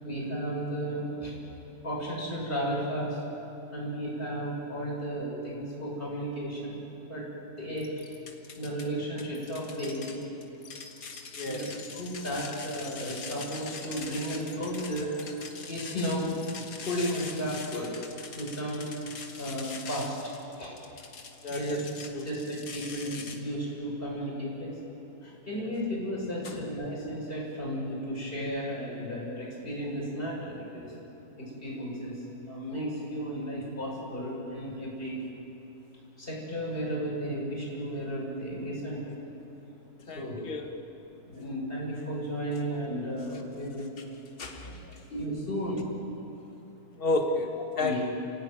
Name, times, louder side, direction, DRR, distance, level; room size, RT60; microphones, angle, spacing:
voice 1, 0.0-1.3 1.8-3.2 3.7-7.2 7.6-7.9 8.6-10.3 11.4-11.6 11.9-16.4 16.8-17.9 18.3-18.8 19.4-20.3 20.6-20.7 21.5-21.8 22.2-24.7 25.2-30.9 31.4-35.3 36.2-39.2 40.1-40.4 41.2-43.9 44.8-45.9 47.8-48.0, equal, 15° left, -4 dB, 6.8 m, -34 dB
sound 1, 7.8-8.8 9.2-23.4, left 5 dB, 40° left, 2.2 m, -43 dB
voice 2, 11.3-11.7 21.4-21.8 22.1-22.3 25.5-25.6 26.4-26.6 40.1-40.7 44.4-44.8 46.9-48.0, left 2 dB, 75° left, 3 dB, 0.5 m, -31 dB
30.0 x 16.5 x 9.3 m, 3.0 s
omnidirectional pair, 3.6 m